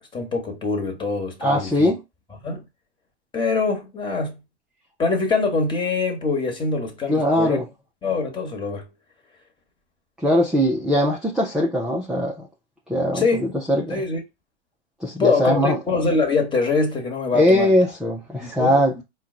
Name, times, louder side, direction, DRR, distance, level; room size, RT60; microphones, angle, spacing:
voice 1, 0.1-1.9 2.4-2.6 3.3-4.4 5.0-7.6 8.0-8.9 13.1-13.4 13.9-14.2 15.2-17.7 18.4-19.0, left 4 dB, 15° left, 1.2 m, -24 dB
voice 2, 1.4-2.0 7.1-7.7 10.2-12.4 12.9-14.0 15.0-15.8 17.3-19.0, equal, ahead, 0.4 m, -20 dB
4.5 x 2.2 x 3.7 m
hypercardioid pair, 115°, 34 cm